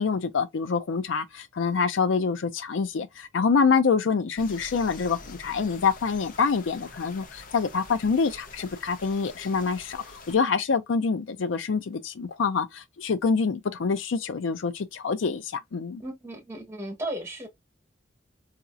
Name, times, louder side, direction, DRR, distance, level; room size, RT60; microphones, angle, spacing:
voice 1, 0.0-16.0, left 5 dB, 85° left, 0.5 m, -26 dB
sound 1, 4.4-10.3, left 3 dB, 50° left, 0.7 m, -46 dB
voice 2, 16.0-17.5, right 1 dB, 15° right, 1.5 m, -35 dB
3.9 x 2.9 x 2.3 m
head